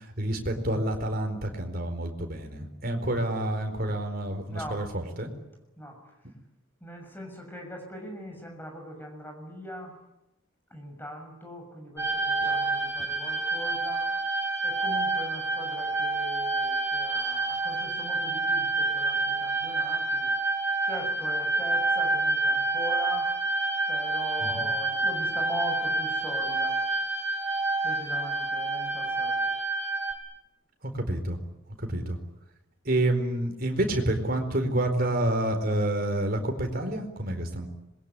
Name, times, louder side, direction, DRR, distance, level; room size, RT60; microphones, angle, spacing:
voice 1, 0.2-5.3 24.5-24.6 31.1-31.4 31.9-32.2 32.9-37.7, right 1 dB, 45° right, 5 dB, 4.4 m, -28 dB
voice 2, 4.5-4.8 5.8-6.0 6.8-9.9 10.7-14.1 14.6-20.3 20.8-23.3 23.9-26.8 27.8-29.3, equal, 10° left, 2 dB, 6.4 m, -41 dB
sound 1, 12.0-30.1, right 3 dB, 10° right, 4.7 m, -28 dB
26.5 x 22.0 x 9.9 m, 0.92 s
head